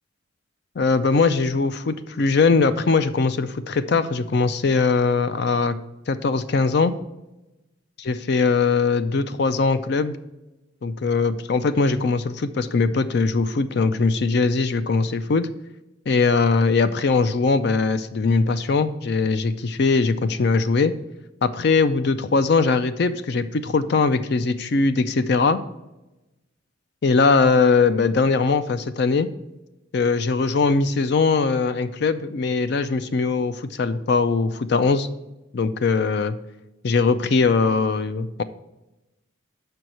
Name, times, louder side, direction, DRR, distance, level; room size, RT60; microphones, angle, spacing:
voice 1, 0.8-5.8 6.1-6.9 8.0-10.2 10.8-15.5 16.1-20.9 21.4-25.6 27.0-29.3 29.9-35.1 35.5-36.3 36.8-38.4, left 4 dB, 50° left, 11 dB, 0.4 m, -21 dB
6.2 x 4.6 x 6.5 m, 0.98 s
head